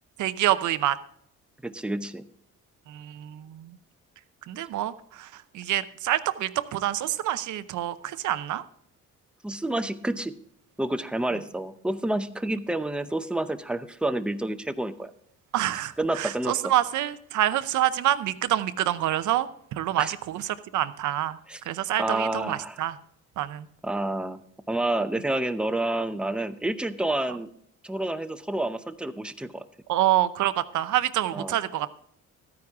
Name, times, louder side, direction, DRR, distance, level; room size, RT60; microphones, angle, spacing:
voice 1, 0.2-1.0 2.9-3.8 4.5-8.6 15.5-21.4 21.7-23.0 23.4-23.7 29.9-31.9, right 13 dB, 75° right, 14 dB, 0.7 m, -27 dB
voice 2, 1.6-2.3 9.4-10.3 10.8-15.1 16.0-16.7 20.0-20.1 21.5-21.6 22.0-22.8 23.8-24.4 24.7-27.5 27.8-29.6 31.3-31.6, right 1 dB, 5° right, 10 dB, 0.6 m, -29 dB
13.0 x 9.7 x 3.5 m, 0.65 s
cardioid pair, 90°, 30 cm